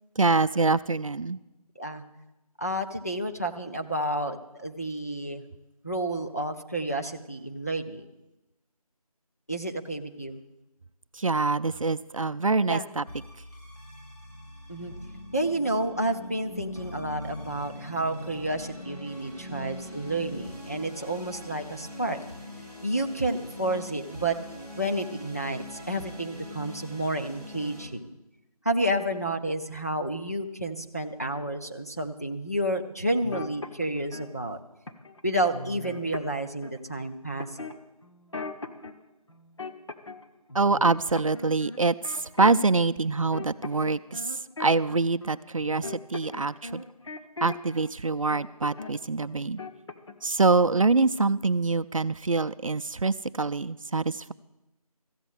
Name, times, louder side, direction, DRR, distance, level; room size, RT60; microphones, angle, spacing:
voice 1, 0.2-1.4 11.2-13.0 40.5-44.2 44.6-46.8 47.4-49.6 50.2-54.3, right 3 dB, 60° right, 12 dB, 0.4 m, -25 dB
voice 2, 2.6-5.4 5.8-8.0 9.5-10.4 12.7-12.9 14.7-14.9 15.3-22.2 22.8-24.4 24.7-28.1 28.6-34.6 35.2-37.5, right 1 dB, 25° left, 3 dB, 0.5 m, -30 dB
sound 1, 13.1-27.8, left 1 dB, 80° left, 6.6 m, -42 dB
sound 2, 33.2-34.3 34.9-35.2 35.5-36.8 37.4-38.9 39.3-40.2 40.5-42.7 43.0-47.9 48.3-49.0 49.3-50.3 50.5-50.8, left 3 dB, 50° left, 1.1 m, -39 dB
14.0 x 7.9 x 8.2 m, 0.97 s
figure-of-eight pair, 175°, 20 cm